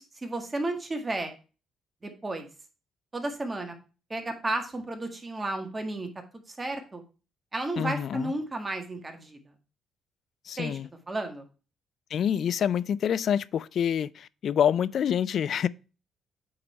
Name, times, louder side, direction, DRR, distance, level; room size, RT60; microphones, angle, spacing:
voice 1, 0.0-1.3 2.0-2.5 3.1-3.7 4.1-6.1 6.5-7.0 7.5-9.4 10.6-10.8 11.1-11.4, right 2 dB, 25° right, 1.8 m, -33 dB
voice 2, 7.8-8.3 10.5-10.9 12.1-15.7, left 9 dB, 65° left, 0.4 m, -27 dB
8.7 x 4.1 x 4.3 m
cardioid pair, 90°, 0 cm